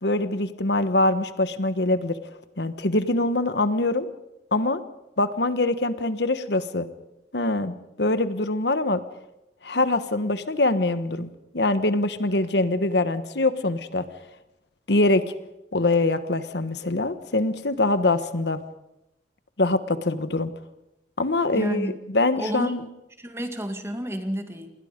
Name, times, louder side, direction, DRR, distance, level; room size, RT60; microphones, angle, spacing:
voice 1, 0.0-2.2 2.6-4.1 4.5-4.8 5.2-6.9 7.3-9.0 9.6-14.0 14.9-15.3 15.7-18.6 19.6-20.5 21.2-22.9, left 2 dB, 65° left, 11 dB, 1.3 m, -24 dB
voice 2, 21.5-21.9 22.4-22.7 23.2-24.7, equal, 15° right, 6 dB, 2.1 m, -30 dB
28.5 x 21.0 x 5.2 m, 0.91 s
head